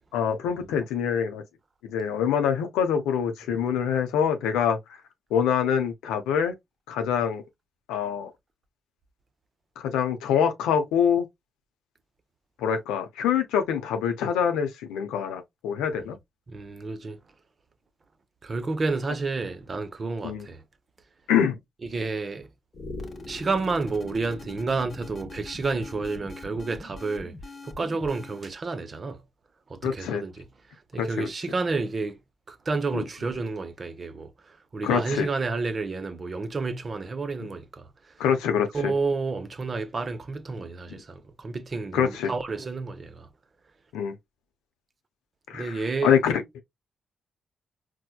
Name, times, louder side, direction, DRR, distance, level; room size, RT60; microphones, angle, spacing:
voice 1, 0.1-1.4 1.9-4.8 5.3-6.5 6.9-7.4 7.9-8.3 9.8-11.3 12.6-16.2 20.2-20.5 21.3-21.6 29.8-30.2 31.0-31.3 32.9-33.0 34.8-35.3 38.2-38.9 41.9-42.3 43.9-44.1 45.5-46.4, left 8 dB, 85° left, 0.5 m, -25 dB
voice 2, 16.5-17.2 18.4-20.6 21.8-22.5 23.3-27.3 27.6-29.2 29.7-32.2 32.5-37.9 38.7-43.3 45.5-46.1, right 3 dB, 50° right, 0.6 m, -30 dB
sound 1, 22.7-28.5, left 2 dB, 50° left, 0.7 m, -42 dB
4.3 x 2.1 x 2.2 m
supercardioid pair, 45°, 0 cm